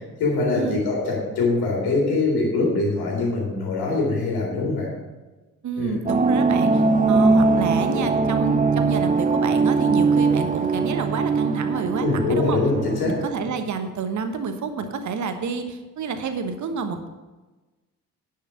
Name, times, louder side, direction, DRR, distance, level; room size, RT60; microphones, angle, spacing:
voice 1, 0.0-4.9 5.8-5.9 12.0-13.1, left 3 dB, 55° left, -2 dB, 4.0 m, -23 dB
voice 2, 5.6-12.6 13.0-17.1, right 5 dB, 40° right, 8 dB, 1.2 m, -28 dB
sound 1, 6.1-13.4, right 4 dB, 20° right, 0.7 m, -21 dB
10.5 x 6.7 x 5.9 m, 1.2 s
figure-of-eight pair, 45°, 44 cm